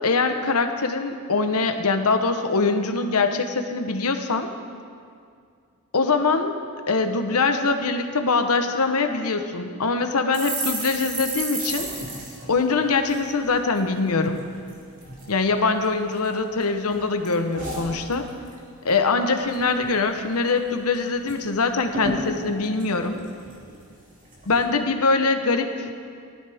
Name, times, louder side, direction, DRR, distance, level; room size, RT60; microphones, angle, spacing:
voice 1, 0.0-4.5 5.9-6.5 6.9-11.9 12.5-14.5 15.3-18.3 18.8-23.2 24.5-25.9, left 4 dB, 80° left, 7 dB, 1.0 m, -23 dB
sound 1, 10.3-13.9 14.2-14.4 14.7-15.3 15.8-16.6 16.9-18.6 18.9-19.1 19.4-20.0 20.3-20.4 20.7-21.4 21.6-21.7 21.9-23.8 24.3-24.6, right 2 dB, 35° right, 3.0 m, -34 dB
19.0 x 13.5 x 3.6 m, 2.3 s
head